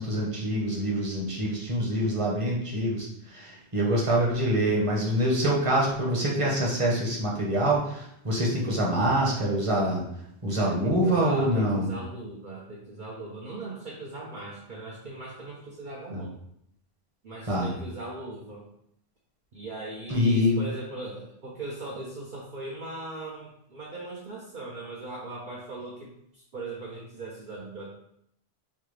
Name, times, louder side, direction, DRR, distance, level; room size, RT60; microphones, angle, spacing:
voice 1, 0.0-10.0 10.4-11.9 16.1-16.2 17.5-17.7 20.1-20.6, equal, 30° right, -3 dB, 1.0 m, -25 dB
voice 2, 10.6-16.3 17.2-18.7 19.5-27.9, right 2 dB, 55° right, -4 dB, 0.8 m, -39 dB
5.5 x 2.3 x 3.2 m, 0.73 s
omnidirectional pair, 1.1 m